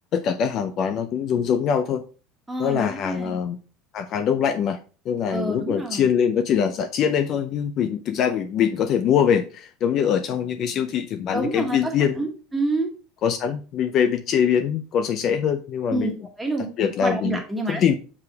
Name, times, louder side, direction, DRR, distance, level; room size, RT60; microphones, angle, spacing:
voice 1, 0.1-2.0 2.6-3.6 3.9-4.8 5.1-12.2 13.2-16.1 16.8-17.4 17.7-17.9, left 8 dB, 35° left, 9 dB, 0.5 m, -23 dB
voice 2, 2.5-3.4 5.3-6.0 11.3-12.9 15.9-17.8, right 2 dB, 5° right, 1 dB, 1.4 m, -28 dB
6.6 x 4.8 x 3.4 m, 0.35 s
cardioid pair, 160°, 0 cm